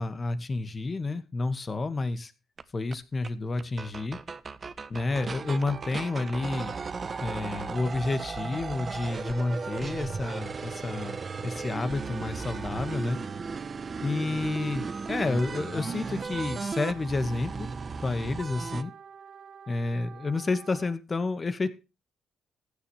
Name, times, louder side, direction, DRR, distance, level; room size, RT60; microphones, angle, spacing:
voice 1, 0.0-2.3 2.7-4.2 4.9-6.8 7.2-13.2 14.0-17.7 18.0-18.9 19.7-21.7, left 3 dB, 30° left, 11 dB, 2.0 m, -30 dB
sound 1, 2.6-2.7 2.9-3.0 3.2-3.3 3.6-18.8, right 4 dB, 35° right, 1.1 m, -36 dB
Wind instrument woodwind instrument, 5.1-21.0, right 7 dB, 60° right, 1.8 m, -48 dB
15.5 x 10.5 x 3.4 m, 0.30 s
cardioid pair, 90°, 0 cm